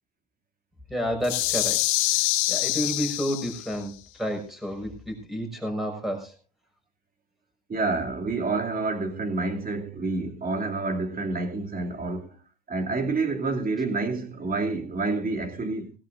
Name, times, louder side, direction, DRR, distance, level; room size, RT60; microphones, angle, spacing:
voice 1, 0.9-1.8 2.5-6.3, equal, ahead, 5.9 m, -30 dB
sound 1, 1.2-3.8, left 17 dB, 80° left, 1.7 m, -26 dB
voice 2, 7.7-12.4 12.7-15.9, right 3 dB, 25° right, 2.9 m, -28 dB
18.5 x 16.5 x 2.7 m
supercardioid pair, 115°, 36 cm